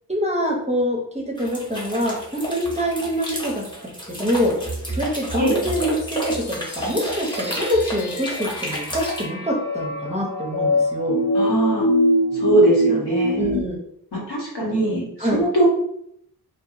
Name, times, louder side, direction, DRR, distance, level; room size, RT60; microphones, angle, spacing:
voice 1, 0.1-3.6 4.1-4.5 4.9-11.2 13.4-13.8 15.2-15.4, equal, 20° right, -1 dB, 0.6 m, -25 dB
sound 1, 1.4-9.3, right 1 dB, 10° left, 0.8 m, -31 dB
sound 2, 5.5-13.6, equal, 55° left, 0.5 m, -24 dB
voice 2, 11.3-11.9 12.3-13.5 14.1-15.7, right 1 dB, 90° left, -4 dB, 1.1 m, -21 dB
2.7 x 2.2 x 2.4 m, 0.73 s
wide cardioid pair, 90°, 38 cm